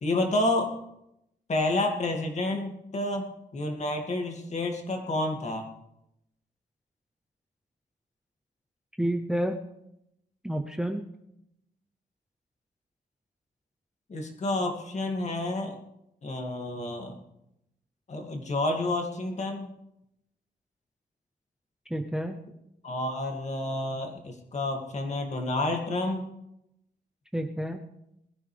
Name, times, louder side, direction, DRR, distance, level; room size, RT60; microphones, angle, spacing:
voice 1, 0.0-0.8 1.5-5.7 14.1-15.8 16.2-17.2 18.1-19.7 22.8-26.3, left 2 dB, 45° left, 3 dB, 2.3 m, -29 dB
voice 2, 9.0-9.6 10.4-11.0 21.9-22.4 27.3-27.8, right 1 dB, 5° right, 5 dB, 0.7 m, -29 dB
21.0 x 13.5 x 3.4 m, 0.83 s
wide cardioid pair, 140°, 17 cm